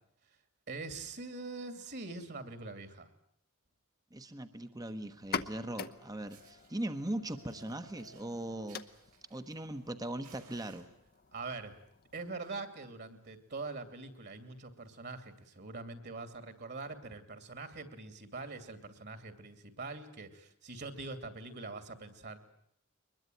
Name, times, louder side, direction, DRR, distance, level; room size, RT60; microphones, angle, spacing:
voice 1, 0.7-3.1 11.3-11.8 12.1-22.4, right 3 dB, 50° right, 10 dB, 2.7 m, -43 dB
voice 2, 4.1-8.8 9.3-10.9, right 1 dB, 15° right, 9 dB, 1.1 m, -39 dB
sound 1, 5.1-12.6, left 5 dB, 45° left, 0.9 m, -46 dB
Fire, 6.3-6.7 7.3-9.9 10.2-11.4 12.2-12.5 12.8-12.9 13.3-13.4 13.6-13.9 14.4-14.5 15.4-15.5, right 6 dB, 80° right, 4.7 m, -62 dB
23.0 x 21.0 x 9.3 m, 0.70 s
head